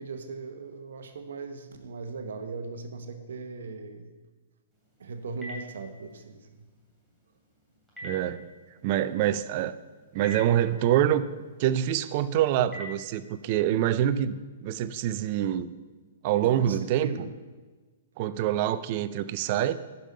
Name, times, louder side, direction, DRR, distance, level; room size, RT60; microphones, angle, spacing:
voice 1, 0.0-4.1 5.0-6.5 16.4-17.3, right 4 dB, 75° right, 7 dB, 1.0 m, -39 dB
Telephone, 4.7-13.6, equal, ahead, 2.7 m, -48 dB
voice 2, 8.0-8.4 8.8-9.8 10.1-11.2 11.6-15.7 16.2-17.1 18.2-19.8, right 11 dB, 45° right, 14 dB, 0.4 m, -25 dB
10.5 x 5.3 x 5.4 m, 1.4 s
hypercardioid pair, 140°, 0 cm